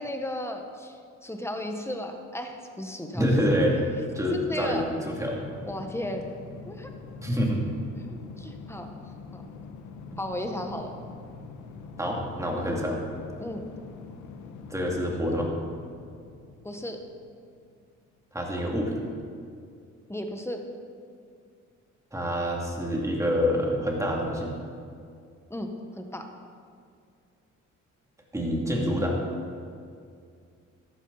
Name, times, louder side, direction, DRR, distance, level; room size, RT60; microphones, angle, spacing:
voice 1, 0.0-3.4 4.5-4.8 5.6-6.3 6.7-6.9 8.1-8.9 9.3-9.4 10.2-10.9 13.4-13.7 16.6-17.0 20.1-20.6 25.5-25.7 25.9-26.3, left 1 dB, 10° left, 4 dB, 1.3 m, -35 dB
voice 2, 3.1-3.8 4.1-5.4 7.2-7.6 12.0-13.0 14.7-15.5 18.3-19.0 22.1-24.5 28.3-29.2, equal, 10° right, -1 dB, 2.6 m, -26 dB
sound 1, 3.3-17.7, left 4 dB, 75° left, 1.1 m, -44 dB
13.5 x 11.5 x 4.1 m, 2.3 s
cardioid pair, 90°, 30 cm